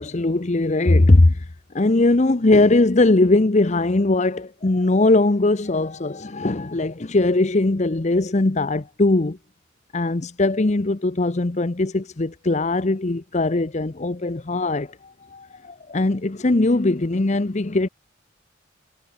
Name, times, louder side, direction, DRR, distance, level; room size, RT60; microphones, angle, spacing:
voice 1, 0.0-1.5 1.7-9.4 9.9-17.9, left 2 dB, 35° left, 0.8 m, -20 dB
head